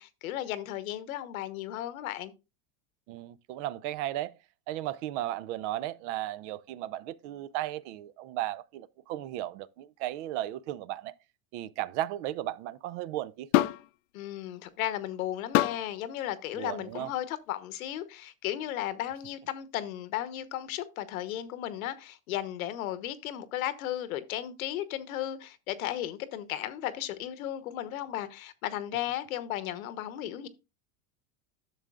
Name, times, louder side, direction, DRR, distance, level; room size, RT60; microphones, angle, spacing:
voice 1, 0.0-2.3 14.1-30.5, left 12 dB, 90° left, 1.1 m, -35 dB
voice 2, 3.1-4.3 4.7-11.1 11.5-13.6 16.5-17.1, right 14 dB, 60° right, 0.6 m, -35 dB
sound 1, 13.5-13.9 15.5-15.9 16.9-17.1, left 17 dB, 65° left, 0.5 m, -25 dB
11.0 x 6.9 x 2.4 m
supercardioid pair, 140°, 41 cm